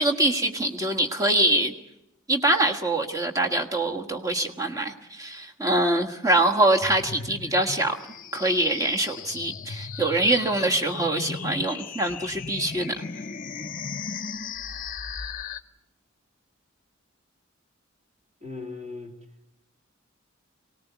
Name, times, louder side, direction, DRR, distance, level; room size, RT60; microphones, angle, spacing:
voice 1, 0.0-1.7 2.3-7.9 8.3-12.9, right 1 dB, 15° right, 1.5 m, -24 dB
sound 1, 6.8-15.6, left 5 dB, 40° left, 0.8 m, -36 dB
voice 2, 18.4-19.1, left 3 dB, 30° right, 2.8 m, -37 dB
23.5 x 19.0 x 8.2 m
head